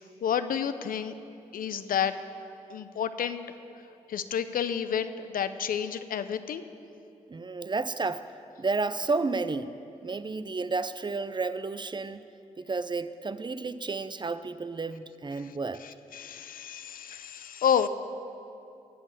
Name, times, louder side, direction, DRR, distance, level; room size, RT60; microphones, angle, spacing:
voice 1, 0.2-1.1 1.5-2.1 2.7-3.4 4.1-6.7 15.4-17.9, left 8 dB, 70° left, 11 dB, 0.6 m, -30 dB
voice 2, 7.3-8.3 8.6-9.7 10.0-12.2 12.6-15.8, right 3 dB, 30° right, 13 dB, 0.6 m, -31 dB
15.5 x 5.3 x 8.5 m, 2.8 s
supercardioid pair, 45°, 15 cm